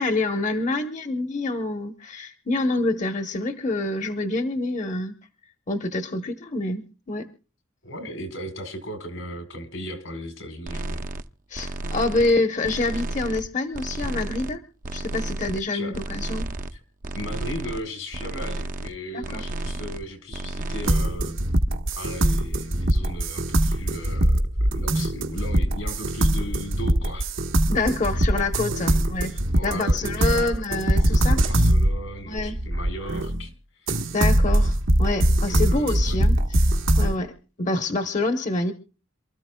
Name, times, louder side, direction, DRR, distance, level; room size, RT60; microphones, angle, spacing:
voice 1, 0.0-5.1 5.7-6.8 7.1-7.3 11.5-14.6 14.9-16.5 19.1-19.4 27.7-29.3 29.6-31.4 32.3-32.6 34.1-37.3 37.6-38.7, left 2 dB, 40° left, 7 dB, 0.9 m, -26 dB
voice 2, 7.8-11.0 15.7-16.0 16.7-16.8 17.1-21.4 22.0-27.3 27.8-27.9 28.6-30.6 31.0-34.1 35.2-36.2, equal, 85° left, 8 dB, 4.2 m, -37 dB
sound 1, 10.7-11.2 11.5-12.4 12.6-13.5 13.7-14.6 14.8-15.6 15.9-16.8 17.0-17.8 18.1-18.9 19.2-20.0 20.3-20.9, right 2 dB, 40° right, 0.6 m, -32 dB
sound 2, 20.9-33.5 33.9-37.2, right 1 dB, 80° right, 1.4 m, -22 dB
27.5 x 14.0 x 2.2 m, 0.35 s
head